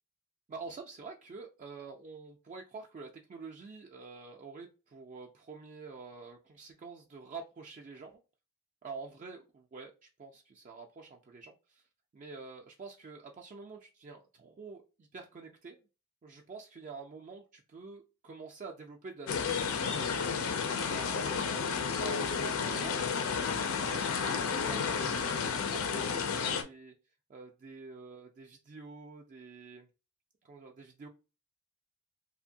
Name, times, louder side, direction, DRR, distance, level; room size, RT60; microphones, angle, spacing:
voice 1, 0.5-8.2 8.8-9.9 10.2-11.8 12.1-14.8 15.1-15.8 16.2-17.4 17.7-20.0 20.8-23.3 23.6-25.3 25.7-26.9 27.3-29.9 30.4-31.1, right 4 dB, 35° right, 0.3 m, -47 dB
sound 1, 19.3-26.6, left 6 dB, 65° left, 0.4 m, -32 dB
2.7 x 2.5 x 2.7 m
head